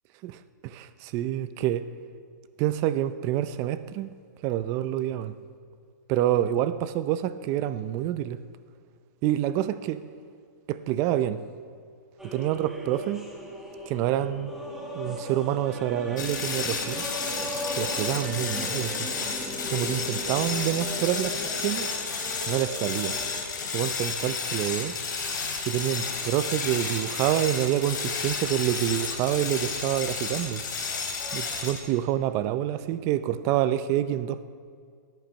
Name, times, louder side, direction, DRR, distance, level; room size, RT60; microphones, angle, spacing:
voice 1, 0.2-1.8 2.6-4.1 4.4-5.3 6.1-8.4 9.2-10.0 10.7-11.4 12.3-13.3 13.9-14.5 14.9-17.0 17.7-19.1 19.7-21.9 22.5-23.2 23.7-25.0 25.7-30.6 31.3-34.4, right 12 dB, 30° right, 14 dB, 0.5 m, -27 dB
sound 1, 12.2-23.4, equal, 5° right, 1.6 m, -37 dB
sound 2, 16.2-31.9, left 5 dB, 75° left, 3.5 m, -32 dB
17.5 x 9.2 x 5.7 m, 2.2 s
hypercardioid pair, 155°, 10 cm